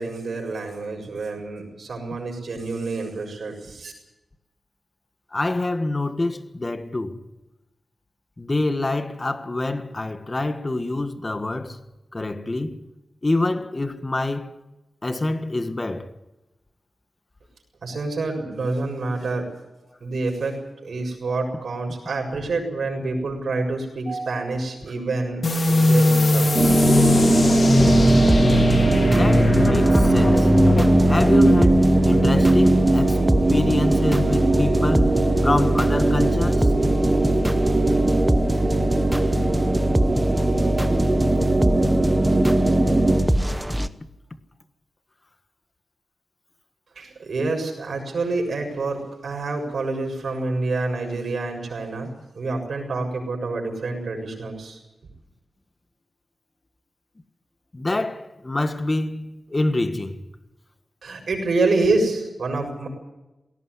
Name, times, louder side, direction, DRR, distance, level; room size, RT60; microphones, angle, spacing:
voice 1, 0.0-3.9 17.8-19.5 20.0-26.5 47.0-54.8 61.0-62.9, right 3 dB, 65° right, 7.2 m, -27 dB
voice 2, 5.3-7.2 8.4-11.8 12.1-12.8 13.2-14.5 15.0-16.1 29.1-30.5 31.1-36.7 42.2-42.3 57.7-60.1, left 2 dB, 25° left, 1.5 m, -26 dB
sound 1, 25.4-32.7, left 2 dB, 45° left, 3.4 m, -21 dB
sound 2, 26.5-43.2, right 2 dB, 30° right, 3.0 m, -20 dB
sound 3, 27.8-43.9, equal, 5° right, 1.0 m, -23 dB
19.5 x 17.5 x 9.7 m
wide cardioid pair, 145°, 0 cm